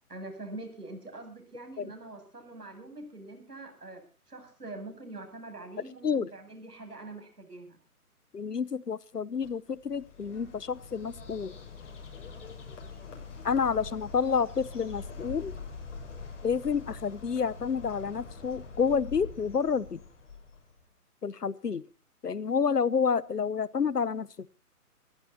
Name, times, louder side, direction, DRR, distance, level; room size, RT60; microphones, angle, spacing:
voice 1, 0.1-7.8, right 2 dB, 85° right, 5 dB, 7.9 m, -44 dB
voice 2, 8.3-11.5 13.4-15.5 16.4-20.0 21.2-21.8 22.2-24.5, left 6 dB, 90° left, 22 dB, 1.0 m, -29 dB
Bird, 9.4-20.8, left 4 dB, 50° left, 6.7 m, -44 dB
26.0 x 14.5 x 2.8 m, 0.38 s
figure-of-eight pair, 145°, 46 cm